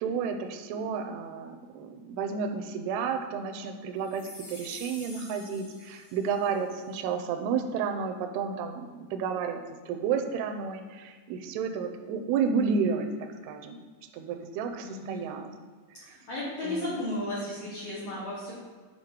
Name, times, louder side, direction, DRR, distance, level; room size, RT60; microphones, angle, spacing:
voice 1, 0.0-9.6 9.9-13.1 13.4-13.8 14.1-15.5 16.0-16.2 16.6-16.9, right 6 dB, 80° right, 5 dB, 2.3 m, -31 dB
sound 1, 4.0-6.6, left 2 dB, 50° left, 2.3 m, -47 dB
voice 2, 14.8-15.3 16.1-18.5, left 1 dB, 70° left, -7 dB, 1.5 m, -34 dB
9.1 x 4.3 x 4.4 m, 1.5 s
omnidirectional pair, 5.0 m